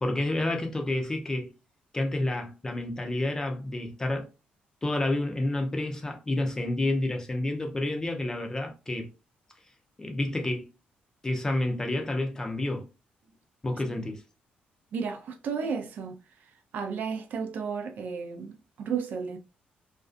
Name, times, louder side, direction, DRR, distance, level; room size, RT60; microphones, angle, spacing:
voice 1, 0.0-1.5 1.9-4.3 4.8-9.1 10.0-10.7 11.2-12.9 13.6-14.2, left 1 dB, 20° left, 0.6 m, -29 dB
voice 2, 14.9-16.2 16.7-19.4, right 6 dB, 60° right, 0.4 m, -33 dB
2.5 x 2.2 x 2.4 m
cardioid pair, 100°, 3 cm